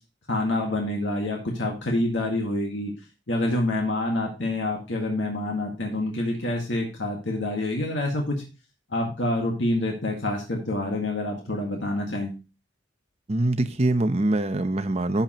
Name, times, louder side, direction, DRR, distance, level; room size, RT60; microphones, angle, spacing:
voice 1, 0.3-2.9 3.3-8.4 8.9-12.3, left 1 dB, 70° left, 1.9 m, -27 dB
voice 2, 13.3-15.2, right 2 dB, 35° right, 0.8 m, -23 dB
11.5 x 6.8 x 3.0 m
head